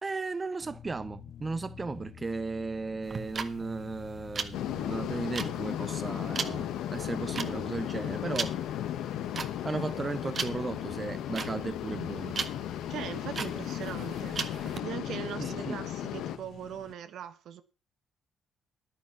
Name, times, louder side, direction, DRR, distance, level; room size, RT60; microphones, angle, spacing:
voice 1, 0.0-8.7 9.6-12.4 15.4-15.8, right 3 dB, 25° right, 0.6 m, -36 dB
sound 1, 0.6-16.9, left 9 dB, 65° left, 0.7 m, -47 dB
sound 2, 3.0-14.8, right 5 dB, 45° right, 1.5 m, -38 dB
sound 3, 4.5-16.4, left 11 dB, 90° left, 1.1 m, -35 dB
voice 2, 12.9-14.5 14.8-17.6, right 9 dB, 75° right, 1.3 m, -40 dB
11.0 x 9.7 x 5.9 m
cardioid pair, 90°, 0 cm